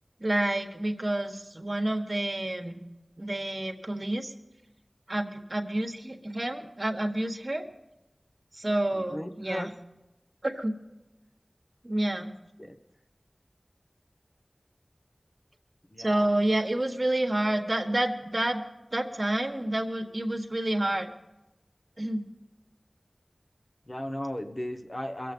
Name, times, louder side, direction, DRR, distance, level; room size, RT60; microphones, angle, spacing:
voice 1, 0.2-2.8 3.2-4.3 5.1-7.6 8.5-9.7 10.4-10.7 11.8-12.3 16.0-18.6 18.9-21.1 22.0-22.2, right 1 dB, 45° right, 5 dB, 1.4 m, -29 dB
voice 2, 8.9-9.7 12.6-12.8 15.9-16.3 23.9-25.3, left 1 dB, 35° left, 5 dB, 1.1 m, -36 dB
23.0 x 7.7 x 5.3 m, 0.96 s
wide cardioid pair, 40°, 0 cm